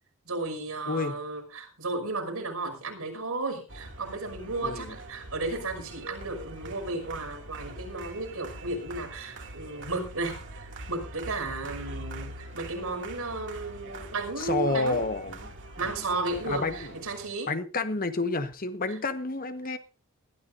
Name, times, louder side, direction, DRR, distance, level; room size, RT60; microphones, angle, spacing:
voice 1, 0.2-15.0 15.8-17.5 18.9-19.0, right 3 dB, 85° right, 5.6 m, -34 dB
sound 1, 3.7-17.3, right 2 dB, 60° right, 2.4 m, -43 dB
voice 2, 4.6-4.9 14.4-15.5 15.8-16.0 16.5-16.9 17.5-19.8, left 3 dB, 40° left, 1.3 m, -30 dB
21.0 x 13.0 x 2.6 m
head